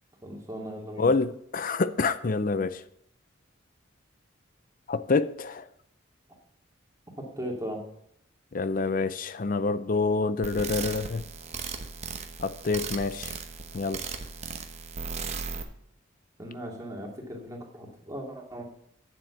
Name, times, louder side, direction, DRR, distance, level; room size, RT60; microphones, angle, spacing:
voice 1, 0.2-1.1 7.2-7.8 16.4-18.6, equal, 15° right, 2.3 m, -38 dB
voice 2, 1.0-2.8 4.9-5.7 8.5-11.2 12.4-13.3 13.7-14.0, left 3 dB, 45° left, 0.5 m, -27 dB
sound 1, 10.4-15.6, right 5 dB, 35° right, 1.0 m, -36 dB
9.2 x 7.7 x 5.9 m
head